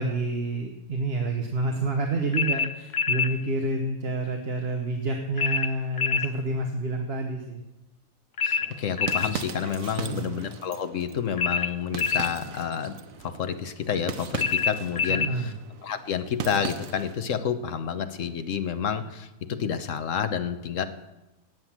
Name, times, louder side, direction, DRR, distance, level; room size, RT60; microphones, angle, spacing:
voice 1, 0.0-7.6 10.0-10.3 15.1-15.5, right 2 dB, 50° right, 4 dB, 1.3 m, -28 dB
sound 1, 2.3-3.3 5.4-6.3 8.4-9.3 11.4-12.3 14.4-15.3, left 6 dB, 45° left, 0.6 m, -26 dB
voice 2, 8.4-15.5 15.8-20.9, left 7 dB, 65° left, 9 dB, 1.3 m, -29 dB
sound 2, 8.6-17.2, right 7 dB, 75° right, 1.3 m, -39 dB
18.5 x 8.1 x 7.3 m, 1.0 s
omnidirectional pair, 1.5 m